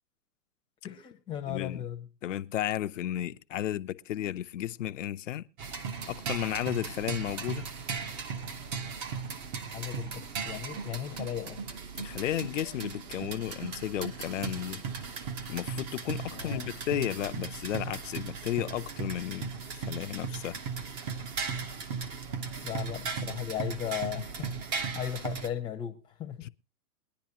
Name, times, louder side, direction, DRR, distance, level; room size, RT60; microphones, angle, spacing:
voice 1, 0.8-2.1 9.7-11.6 16.3-16.7 22.6-24.5 24.9-26.5, left 10 dB, 10° left, 0.8 m, -36 dB
voice 2, 1.5-1.8 2.2-5.4 6.1-7.6 12.0-14.8 15.5-20.6 26.4-26.5, left 12 dB, 50° left, 0.6 m, -33 dB
sound 1, 5.6-25.5, right 5 dB, 25° right, 0.9 m, -37 dB
22.0 x 10.5 x 2.9 m
hypercardioid pair, 140°, 49 cm